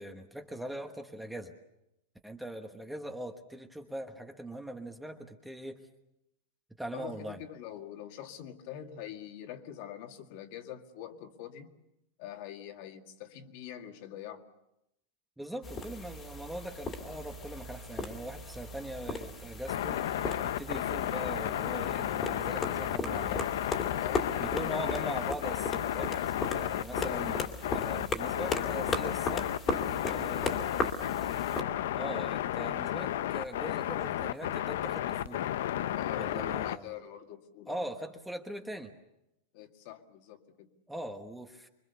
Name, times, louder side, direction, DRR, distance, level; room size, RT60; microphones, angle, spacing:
voice 1, 0.0-1.5 2.2-5.8 6.8-7.4 15.4-20.1 20.4-23.5 24.4-29.9 30.1-30.7 31.9-35.5 36.2-36.9 37.7-38.9 40.9-41.7, right 1 dB, 5° right, 4 dB, 1.3 m, -41 dB
voice 2, 6.9-11.7 12.2-14.4 24.0-24.5 30.0-30.3 30.7-31.1 35.9-37.9 39.5-40.7, left 10 dB, 50° left, 5 dB, 2.1 m, -45 dB
sound 1, 15.6-31.6, left 3 dB, 20° left, 2.5 m, -37 dB
sound 2, 19.7-36.8, left 12 dB, 70° left, 0.8 m, -33 dB
25.5 x 24.0 x 6.9 m, 0.86 s
supercardioid pair, 165°, 0 cm